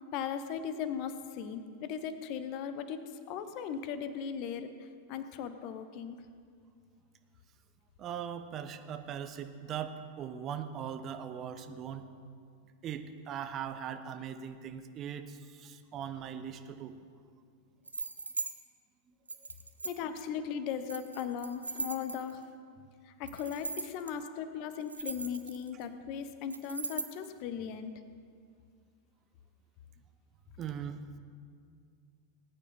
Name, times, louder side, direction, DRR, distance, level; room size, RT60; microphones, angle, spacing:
voice 1, 0.1-3.0 3.3-6.2 19.8-22.4 23.1-27.9, left 7 dB, 45° left, 11 dB, 0.9 m, -38 dB
voice 2, 8.0-12.0 12.8-16.9 30.6-31.0, right 8 dB, 30° right, 8 dB, 0.9 m, -40 dB
sound 1, 17.9-18.5 19.3-20.2 20.9-22.4 23.3-24.1 24.7-25.8 26.5-27.3, right 3 dB, 80° right, 0.7 m, -39 dB
19.5 x 9.1 x 4.3 m, 2.2 s
figure-of-eight pair, 90°, 0 cm